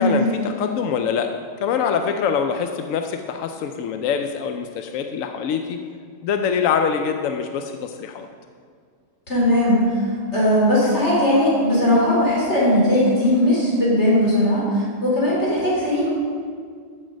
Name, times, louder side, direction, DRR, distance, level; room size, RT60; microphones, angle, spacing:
voice 1, 0.0-5.8 6.2-8.3, left 7 dB, 70° left, 6 dB, 0.8 m, -24 dB
voice 2, 9.3-16.1, left 1 dB, 40° left, -6 dB, 3.6 m, -19 dB
13.5 x 6.3 x 5.2 m, 2.1 s
omnidirectional pair, 1.8 m